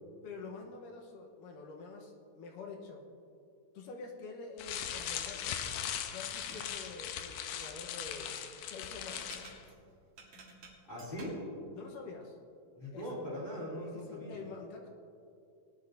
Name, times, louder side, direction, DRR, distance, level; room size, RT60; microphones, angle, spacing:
voice 1, 0.2-3.0 3.7-5.6 6.1-8.4 8.7-9.5 11.7-12.4 12.9-13.1 13.8-14.9, left 4 dB, 70° left, 0 dB, 2.7 m, -47 dB
sound 1, 4.6-9.6, left 9 dB, 90° left, 2.5 m, -39 dB
sound 2, 6.3-6.7 9.1-11.5, right 3 dB, 50° right, 2.4 m, -52 dB
voice 2, 10.9-11.4 12.8-14.4, equal, 15° left, -11 dB, 2.7 m, -40 dB
19.0 x 11.0 x 2.8 m, 2.5 s
omnidirectional pair, 4.0 m